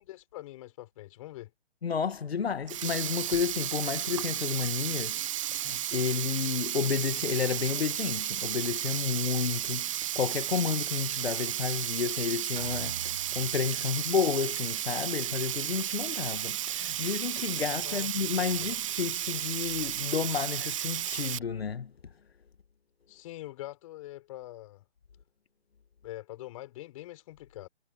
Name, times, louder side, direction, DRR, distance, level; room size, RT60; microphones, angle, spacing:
voice 1, 0.0-1.5 17.8-18.1 18.6-18.7 23.1-24.8 26.0-27.7, left 16 dB, 30° left, 4.4 m, -44 dB
voice 2, 1.8-5.2 5.5-21.9, left 6 dB, 60° left, 1.6 m, -31 dB
Sink (filling or washing), 2.5-21.4, right 12 dB, 30° right, 1.0 m, -33 dB
sound 1, 12.6-14.4, right 4 dB, 80° right, 1.6 m, -45 dB
figure-of-eight pair, 140°, 34 cm